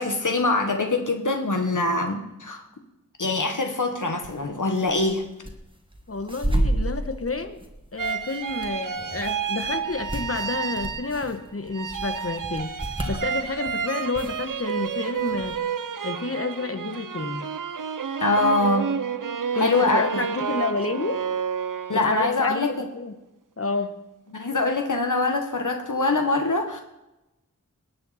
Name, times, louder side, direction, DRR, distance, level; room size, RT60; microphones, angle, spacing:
voice 1, 0.0-2.6 3.2-5.2 18.2-18.9 19.5-20.2 21.9-22.9 24.3-26.8, left 2 dB, 70° left, 4 dB, 1.3 m, -23 dB
sound 1, 4.2-4.4 4.7-5.5 5.9-13.7 14.1-14.9 15.2-15.5, right 1 dB, 15° right, 1.7 m, -30 dB
voice 2, 6.1-7.6 7.9-12.7 13.1-15.6 16.0-17.5 19.5-21.2 21.9-23.1 23.6-23.9, left 3 dB, 45° left, 8 dB, 1.2 m, -29 dB
sound 2, 8.0-11.4 11.7-22.3, right 6 dB, 80° right, 0.6 m, -30 dB
18.5 x 8.9 x 4.2 m, 0.95 s
wide cardioid pair, 50°, 32 cm